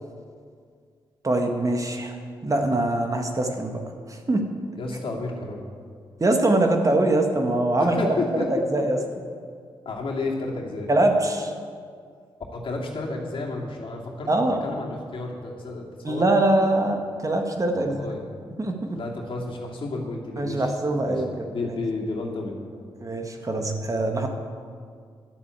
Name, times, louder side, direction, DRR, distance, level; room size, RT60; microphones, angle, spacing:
voice 1, 1.2-2.2 2.4-3.8 4.1-4.5 6.2-8.1 8.7-9.0 10.9-11.5 14.3-14.6 16.0-18.1 18.6-19.0 20.4-21.7 23.0-24.3, right 2 dB, 35° right, 4 dB, 1.7 m, -23 dB
voice 2, 4.8-5.6 7.8-8.5 9.8-10.9 12.5-16.2 17.7-18.2 18.9-20.7 21.0-21.2 21.5-22.6, left 3 dB, 60° left, -2 dB, 2.5 m, -31 dB
11.0 x 7.4 x 8.2 m, 2.1 s
supercardioid pair, 50°, 10 cm